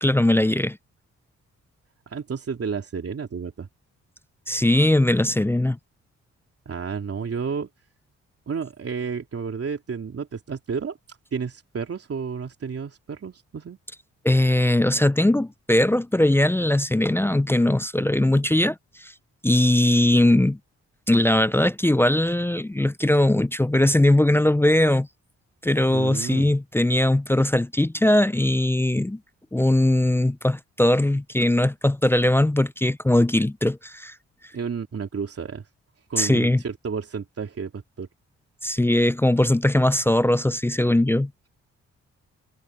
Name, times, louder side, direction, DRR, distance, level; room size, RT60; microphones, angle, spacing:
voice 1, 0.0-0.8 4.5-5.8 14.2-19.1 19.4-20.6 21.1-25.1 25.6-29.2 29.5-34.1 36.2-36.6 38.6-41.3, left 1 dB, 10° left, 0.5 m, -20 dB
voice 2, 2.1-3.7 6.6-7.7 8.5-11.0 11.3-13.8 25.9-26.5 34.5-35.6 36.1-38.1, right 6 dB, 50° right, 3.3 m, -31 dB
cardioid pair, 60°, 29 cm